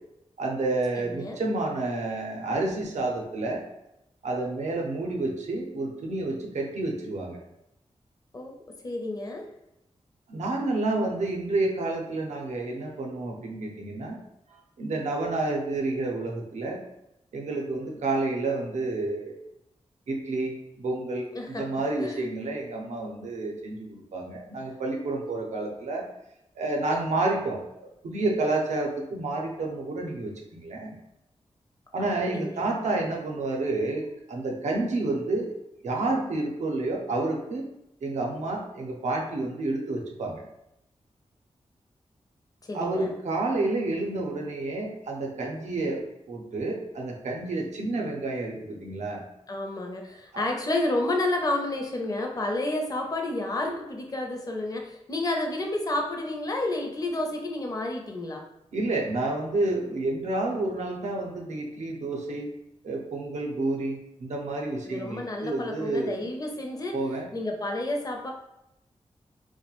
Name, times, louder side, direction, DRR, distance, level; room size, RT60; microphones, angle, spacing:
voice 1, 0.4-3.6 4.2-7.4 10.3-14.2 14.5-16.8 17.3-19.4 20.1-26.0 26.6-31.0 31.9-35.5 35.8-37.7 38.0-40.4 42.7-49.2 50.3-50.4 58.7-62.5 62.8-66.2 66.9-67.3, right 2 dB, 90° right, 0 dB, 0.5 m, -29 dB
voice 2, 1.1-1.4 8.3-8.5 8.8-9.5 21.3-21.7 22.0-22.2 32.3-32.7 42.6-43.1 49.5-58.4 64.9-67.0 67.3-68.3, left 2 dB, 30° left, 2 dB, 0.5 m, -30 dB
2.3 x 2.1 x 2.9 m, 0.84 s
cardioid pair, 70°, 12 cm